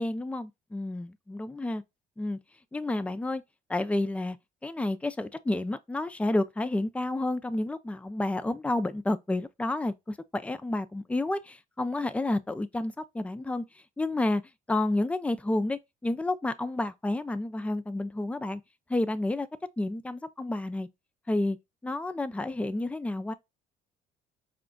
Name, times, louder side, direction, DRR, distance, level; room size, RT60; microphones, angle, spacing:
voice 1, 0.0-1.8 2.2-2.4 2.7-3.4 3.7-4.4 4.6-13.6 14.0-14.4 14.7-18.6 18.9-19.5 19.8-20.9 21.3-21.6 21.8-23.3, left 2 dB, 5° left, 0.4 m, -30 dB
5.0 x 2.3 x 3.7 m
cardioid pair, 110°, 17 cm